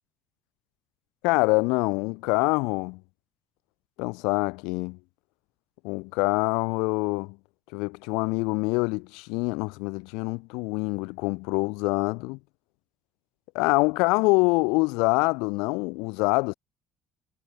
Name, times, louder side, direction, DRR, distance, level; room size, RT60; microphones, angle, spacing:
voice 1, 1.2-3.0 4.0-5.0 5.8-7.3 7.7-12.4 13.5-16.5, left 28 dB, 90° left, 4.3 m, -25 dB
cardioid pair, 110°, 0 cm